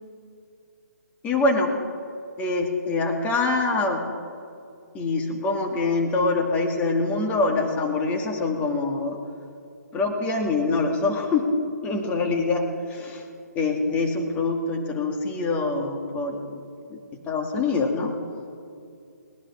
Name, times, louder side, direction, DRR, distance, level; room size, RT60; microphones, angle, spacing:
voice 1, 1.2-1.7 2.4-4.0 4.9-9.2 9.9-11.5 11.8-13.2 13.6-16.4 16.9-17.0 17.3-18.1, left 3 dB, 15° left, 2 dB, 2.1 m, -24 dB
21.0 x 18.5 x 3.7 m, 2.4 s
figure-of-eight pair, 140°, 9 cm